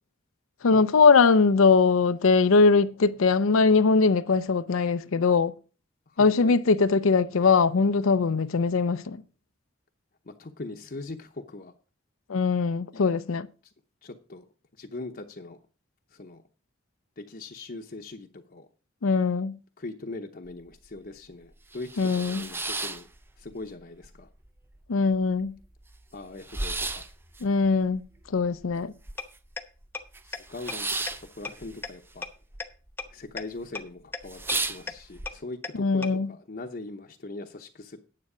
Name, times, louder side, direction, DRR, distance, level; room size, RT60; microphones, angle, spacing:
voice 1, 0.6-5.5 6.2-9.2 12.3-13.5 19.0-19.6 22.0-22.5 24.9-25.6 27.4-28.0 28.3-28.9 35.8-36.3, left 4 dB, 80° left, 0.5 m, -21 dB
voice 2, 6.1-6.6 10.3-11.7 14.0-14.4 14.8-15.6 16.1-16.4 17.2-18.7 19.8-21.9 22.1-23.1 23.4-24.3 26.1-27.0 30.2-32.3 33.1-38.0, left 2 dB, 45° left, 0.8 m, -41 dB
sound 1, 20.5-20.6 21.0-21.1 21.5-23.7 24.0-24.8 25.1-25.2 25.4-29.5 29.8-32.6 32.9-33.4 33.8-33.9 34.2-35.3, right 3 dB, 10° right, 0.5 m, -34 dB
sound 2, 29.2-29.3 29.6-29.7 29.9-30.0 30.3-30.4 30.7-30.8 31.1-31.2 31.4-31.5 31.8-31.9 32.2-32.3 32.6-32.7 33.0-33.1 33.4-33.5 33.7-33.8 34.1-34.2 34.5-34.6 34.9-35.0 35.3-35.4 35.6-35.7 36.0-36.1, left 4 dB, 10° left, 0.8 m, -33 dB
9.7 x 7.5 x 4.9 m
head